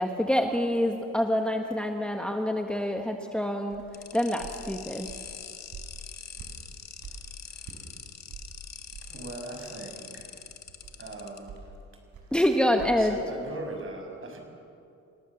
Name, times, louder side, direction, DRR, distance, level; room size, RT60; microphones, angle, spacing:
voice 1, 0.0-5.1 12.3-13.2, left 1 dB, 5° left, 4 dB, 1.5 m, -27 dB
sound 1, 3.7-7.9 8.3-13.0, right 5 dB, 75° right, 5.4 m, -46 dB
sound 2, 3.9-11.4, left 8 dB, 60° left, 2.0 m, -44 dB
voice 2, 9.1-10.3 11.0-11.5 12.9-14.4, right 2 dB, 45° right, 2 dB, 6.7 m, -40 dB
27.5 x 18.0 x 7.1 m, 2.6 s
cardioid pair, 90°, 30 cm